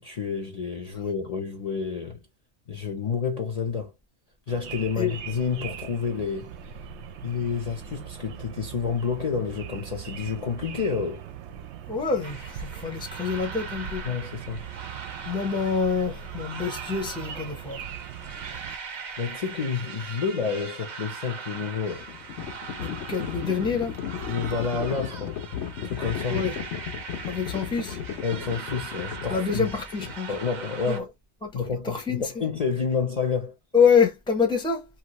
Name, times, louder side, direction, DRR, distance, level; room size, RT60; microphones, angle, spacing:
voice 1, 0.0-2.2 2.7-3.9 4.5-6.5 7.2-11.2 14.0-14.6 19.2-22.1 24.2-25.4 25.9-26.4 28.2-29.7 30.3-31.1 31.5-33.5, left 5 dB, 40° left, 0.6 m, -29 dB
sound 1, 4.5-18.8, right 8 dB, 75° right, 0.8 m, -40 dB
voice 2, 11.9-14.1 15.2-17.8 22.8-24.0 26.3-26.6 27.3-28.0 29.3-30.3 30.9-31.0 31.4-32.4 33.7-34.9, left 6 dB, 5° left, 0.6 m, -26 dB
sound 2, 12.2-31.0, right 6 dB, 50° right, 0.7 m, -40 dB
Livestock farm animals working animals, 21.9-30.6, left 9 dB, 75° left, 1.0 m, -35 dB
2.8 x 2.4 x 2.9 m
omnidirectional pair, 1.2 m